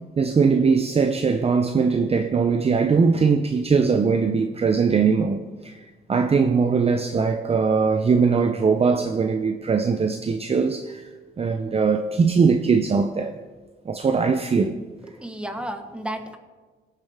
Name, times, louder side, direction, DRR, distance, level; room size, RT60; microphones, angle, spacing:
voice 1, 0.2-5.7 6.1-11.1 11.4-13.3 13.9-14.8, right 5 dB, 30° right, 0.6 m, -21 dB
voice 2, 15.0-16.4, right 1 dB, 5° right, 1.3 m, -33 dB
20.5 x 6.9 x 3.6 m
cardioid pair, 90°, 20 cm